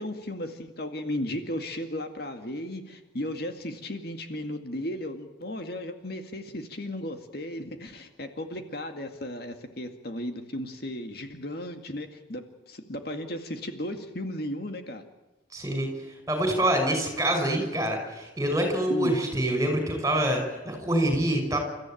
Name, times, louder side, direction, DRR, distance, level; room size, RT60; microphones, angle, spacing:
voice 1, 0.0-15.0 18.9-19.1, left 1 dB, 55° left, 6 dB, 2.1 m, -35 dB
voice 2, 15.5-15.9 16.3-21.6, right 1 dB, 15° right, 5 dB, 5.8 m, -26 dB
30.0 x 14.5 x 9.2 m, 1.1 s
head